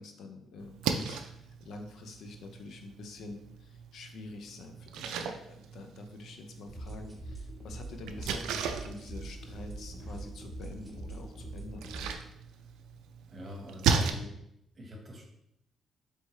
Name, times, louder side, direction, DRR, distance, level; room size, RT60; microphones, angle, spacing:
voice 1, 0.0-11.9, left 3 dB, 70° left, 5 dB, 0.6 m, -47 dB
Splash splatter, 0.6-14.1, right 6 dB, 90° right, 0.4 m, -37 dB
sound 1, 6.7-12.1, right 2 dB, 10° right, 1.1 m, -43 dB
voice 2, 13.3-14.3 14.7-15.2, left 1 dB, 35° right, 1 dB, 1.1 m, -45 dB
4.4 x 3.3 x 3.2 m, 0.79 s
cardioid pair, 90°, 0 cm